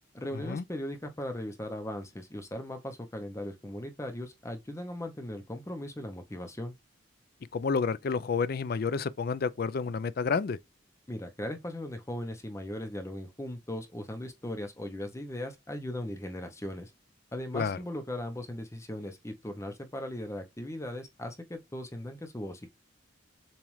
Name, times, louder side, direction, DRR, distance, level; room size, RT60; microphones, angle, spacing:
voice 1, 0.1-6.7 11.1-16.9 17.3-22.7, left 1 dB, 15° left, 0.7 m, -38 dB
voice 2, 7.5-10.6 17.5-17.8, left 5 dB, 50° left, 0.4 m, -30 dB
7.1 x 2.4 x 3.1 m
head